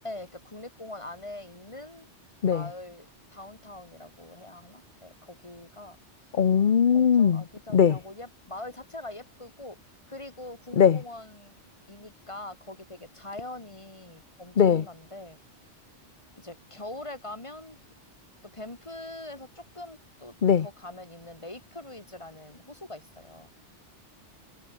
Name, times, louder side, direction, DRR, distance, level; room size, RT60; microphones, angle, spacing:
voice 1, 0.0-2.1 2.4-6.0 6.9-9.8 10.1-11.5 11.9-15.4 16.4-17.8 18.4-23.5, left 2 dB, 25° left, 3.0 m, -43 dB
voice 2, 6.3-7.4 7.7-8.0 10.8-11.0 14.6-14.8 20.4-20.7, left 7 dB, 45° left, 0.9 m, -20 dB
omnidirectional pair, 1.2 m